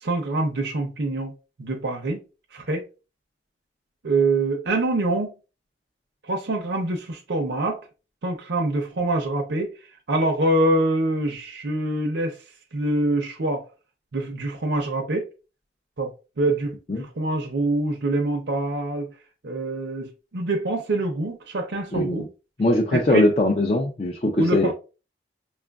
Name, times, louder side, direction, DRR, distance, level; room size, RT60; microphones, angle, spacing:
voice 1, 0.0-1.3 1.6-2.2 2.5-2.8 4.0-5.3 6.2-7.8 8.2-9.7 10.1-12.4 12.7-13.6 14.1-15.3 16.0-16.1 16.4-19.1 19.4-22.2 22.9-23.2 24.4-24.7, right 2 dB, 75° right, 0.7 m, -25 dB
voice 2, 21.9-22.3 22.6-24.7, left 1 dB, 35° left, 0.4 m, -21 dB
5.7 x 2.4 x 2.3 m
head